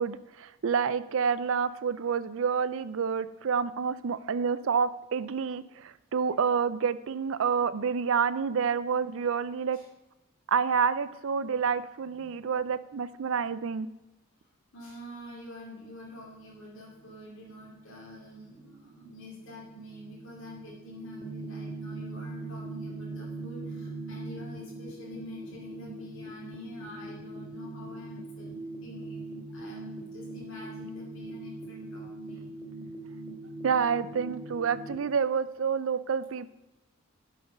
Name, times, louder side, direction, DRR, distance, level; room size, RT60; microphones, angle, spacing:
voice 1, 0.0-9.8 10.5-13.9 33.6-36.5, right 6 dB, 65° right, 15 dB, 0.5 m, -28 dB
voice 2, 14.7-29.3 29.5-32.5, left 1 dB, 60° left, -5 dB, 2.6 m, -47 dB
sound 1, 16.0-35.0, right 2 dB, 45° right, 1.8 m, -42 dB
11.5 x 5.0 x 5.3 m, 1.0 s
head